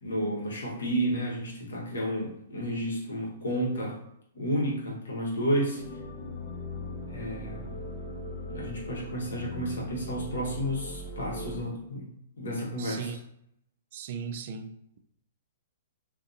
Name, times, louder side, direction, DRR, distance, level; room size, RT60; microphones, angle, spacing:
voice 1, 0.0-4.0 4.3-5.8 7.1-7.8 8.5-12.1 12.4-13.1, equal, 75° left, 1.1 m, -31 dB
sound 1, 5.7-11.6, left 1 dB, 60° left, 0.7 m, -39 dB
voice 2, 12.8-13.2 13.9-15.0, right 7 dB, 55° right, 0.3 m, -37 dB
2.7 x 2.5 x 2.5 m
hypercardioid pair, 120°, 0 cm